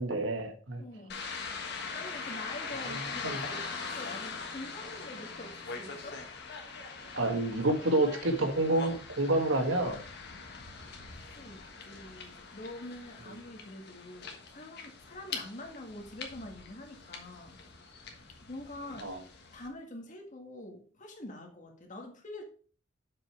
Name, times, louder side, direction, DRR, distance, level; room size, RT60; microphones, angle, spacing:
voice 1, 0.0-0.8 3.2-3.4 7.1-10.0 19.0-19.2, right 2 dB, 70° right, 4 dB, 1.6 m, -28 dB
voice 2, 0.8-1.5 1.9-6.3 11.4-17.6 18.4-19.2 19.5-22.4, left 1 dB, 40° left, 2 dB, 1.8 m, -45 dB
sound 1, 1.1-19.7, left 4 dB, 60° left, 1.5 m, -42 dB
7.4 x 5.4 x 4.8 m, 0.43 s
head